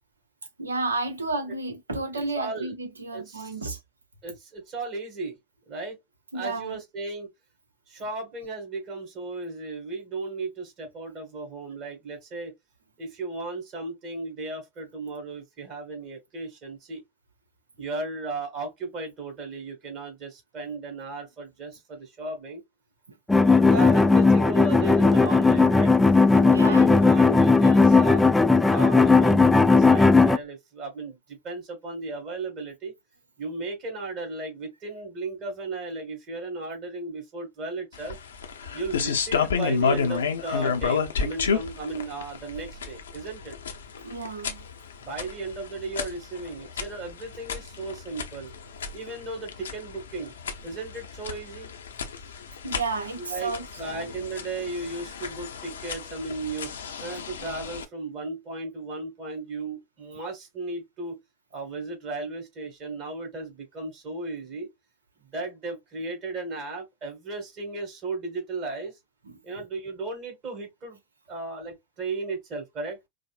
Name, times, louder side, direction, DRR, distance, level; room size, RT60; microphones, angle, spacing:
voice 1, 0.6-3.8 6.3-6.8 23.1-23.2 26.3-26.9 44.0-44.6 52.6-54.1 69.2-69.4, right 3 dB, 85° right, 0.7 m, -32 dB
voice 2, 2.1-2.7 3.1-3.8 4.2-5.4 5.7-6.0 6.3-7.3 7.9-12.5 13.0-17.0 17.8-22.6 23.4-25.9 26.4-28.2 28.7-32.9 33.4-38.2 38.7-43.6 45.0-48.5 48.9-50.3 50.6-51.7 53.2-53.5 53.8-56.7 57.0-61.2 61.5-64.7 65.3-69.0 69.4-71.0 71.3-73.0, right 3 dB, 45° right, 2.0 m, -35 dB
sound 1, 23.3-30.4, left 3 dB, 10° left, 0.3 m, -17 dB
sound 2, 37.9-57.8, left 6 dB, 75° left, 0.6 m, -31 dB
4.9 x 2.0 x 2.5 m
figure-of-eight pair, 85°, 0 cm